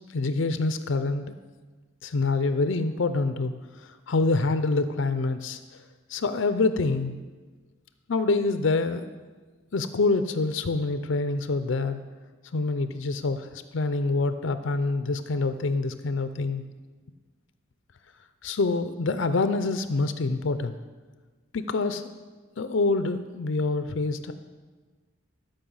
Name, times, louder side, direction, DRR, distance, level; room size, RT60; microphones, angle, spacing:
voice 1, 0.1-1.3 2.0-5.6 6.1-7.2 8.1-9.1 9.7-12.0 12.5-16.6 18.4-20.8 21.5-22.0 22.6-24.3, left 3 dB, 65° left, 10 dB, 0.5 m, -26 dB
12.5 x 5.5 x 7.0 m, 1.3 s
head